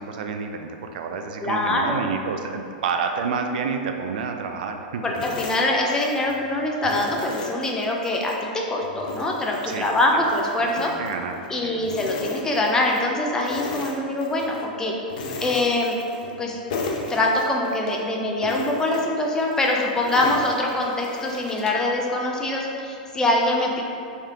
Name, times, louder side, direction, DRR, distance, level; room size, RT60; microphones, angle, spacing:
voice 1, 0.0-5.0 9.7-9.9 10.6-11.3 11.6-11.8 20.2-20.4, right 5 dB, 70° right, 5 dB, 0.3 m, -29 dB
voice 2, 1.4-2.0 5.0-10.9 11.5-14.9 15.4-16.0 16.4-16.6 17.1-23.8, left 1 dB, 10° left, -1 dB, 0.4 m, -24 dB
sound 1, 5.1-6.4 6.8-8.4 8.8-11.5 11.8-13.1 13.4-14.7 15.1-16.4 16.7-18.0 18.4-21.9, left 3 dB, 65° left, 0.5 m, -36 dB
3.3 x 2.8 x 3.6 m, 2.5 s
hypercardioid pair, 135°, 5 cm